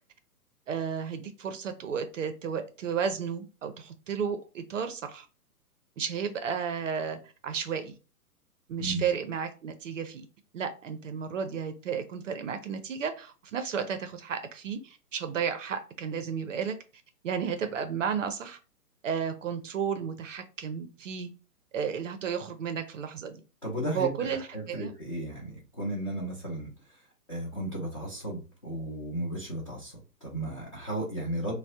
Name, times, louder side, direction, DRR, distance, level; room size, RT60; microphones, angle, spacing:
voice 1, 0.7-5.3 6.0-8.0 8.7-10.3 10.5-16.8 17.2-18.6 19.0-21.3 21.7-23.4 23.9-24.4 24.7-24.9, right 7 dB, 55° right, 0.5 m, -33 dB
voice 2, 23.6-31.6, right 1 dB, 25° left, 0.4 m, -35 dB
3.3 x 2.0 x 2.7 m
hypercardioid pair, 145°, 48 cm